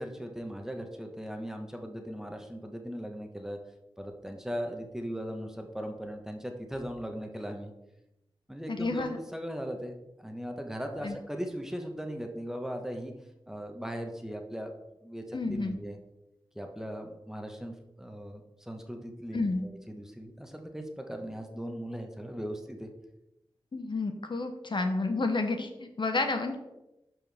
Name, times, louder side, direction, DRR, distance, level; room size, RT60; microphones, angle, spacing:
voice 1, 0.0-3.6 4.0-7.7 8.5-13.1 13.5-14.7 15.0-16.0 16.5-22.9, equal, 5° right, 4 dB, 1.1 m, -38 dB
voice 2, 8.7-9.2 11.0-11.1 15.3-15.8 19.3-19.7 23.7-26.6, left 3 dB, 55° left, 6 dB, 0.9 m, -30 dB
12.0 x 4.6 x 3.5 m, 0.93 s
wide cardioid pair, 70°, 10 cm